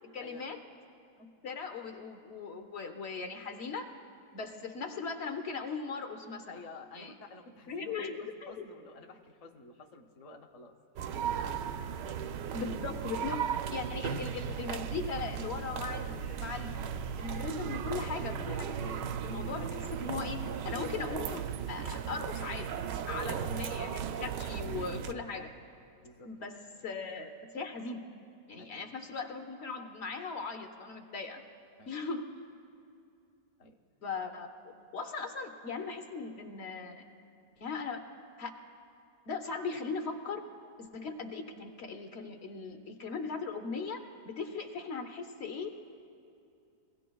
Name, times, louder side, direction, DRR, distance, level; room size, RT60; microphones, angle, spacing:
voice 1, 0.1-0.6 1.2-3.9 4.3-6.6 6.9-7.1 7.7-8.6 12.5-16.9 17.2-25.5 26.3-28.0 28.5-31.4 31.9-32.3 34.0-34.5 34.9-37.0 37.6-38.0 38.4-38.5 39.3-40.4 40.8-45.7, left 4 dB, 50° left, 6 dB, 0.8 m, -39 dB
voice 2, 6.5-12.2 23.2-23.4 26.0-26.5 26.8-26.9 28.6-28.9 31.8-31.9 33.6-33.8, left 3 dB, 70° left, 2 dB, 0.3 m, -52 dB
sound 1, 11.0-25.1, right 8 dB, 90° right, 1.2 m, -36 dB
23.0 x 16.5 x 2.3 m, 2.5 s
omnidirectional pair, 1.8 m